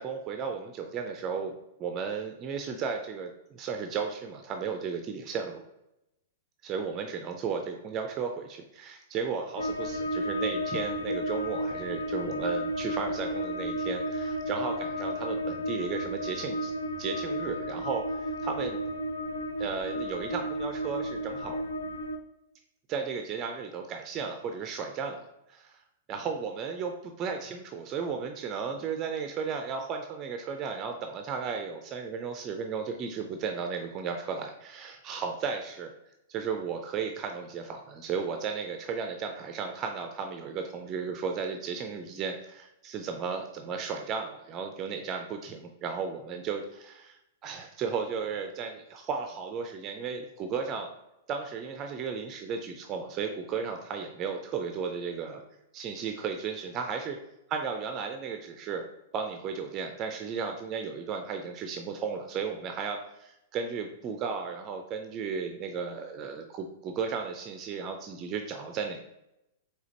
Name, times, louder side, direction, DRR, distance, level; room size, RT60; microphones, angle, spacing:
voice 1, 0.0-5.6 6.6-16.7 17.0-18.8 19.6-21.6 22.9-25.8 26.1-35.9 36.3-50.9 51.3-55.4 55.7-57.2 57.5-58.8 59.1-69.0, right 5 dB, 30° right, 5 dB, 0.4 m, -34 dB
sound 1, 9.6-22.2, equal, 80° left, 0.4 m, -33 dB
4.9 x 3.3 x 2.8 m, 0.87 s
figure-of-eight pair, 105°, 0 cm